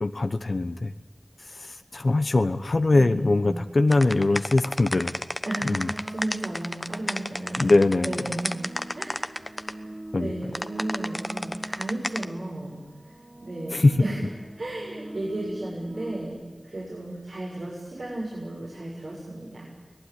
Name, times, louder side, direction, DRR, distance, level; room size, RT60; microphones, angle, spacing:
voice 1, 0.0-0.9 1.5-5.1 5.7-5.9 7.6-8.2 10.1-10.3 13.7-14.0, left 2 dB, 75° left, 9 dB, 1.0 m, -22 dB
voice 2, 2.9-3.6 5.4-5.8 6.0-8.6 9.0-9.9 10.2-12.8 13.4-14.2 14.6-16.4 16.6-19.6, right 1 dB, 85° right, -5 dB, 7.0 m, -34 dB
sound 1, 3.9-9.7 10.5-12.2, left 1 dB, 30° left, 1.1 m, -31 dB
sound 2, 5.8-6.8 7.6-12.1 12.8-16.3, right 1 dB, 55° right, 2.5 m, -42 dB
24.5 x 18.5 x 10.0 m, 1.3 s
wide cardioid pair, 50°, 0 cm